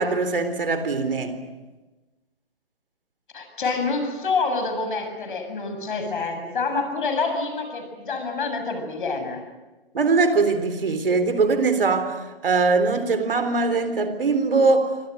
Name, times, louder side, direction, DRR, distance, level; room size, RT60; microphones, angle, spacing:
voice 1, 0.0-1.4 9.9-14.9, right 4 dB, 65° right, 10 dB, 3.8 m, -21 dB
voice 2, 3.3-9.4, left 4 dB, 55° left, 6 dB, 7.3 m, -27 dB
29.5 x 25.0 x 6.5 m, 1.1 s
figure-of-eight pair, 125°, 30 cm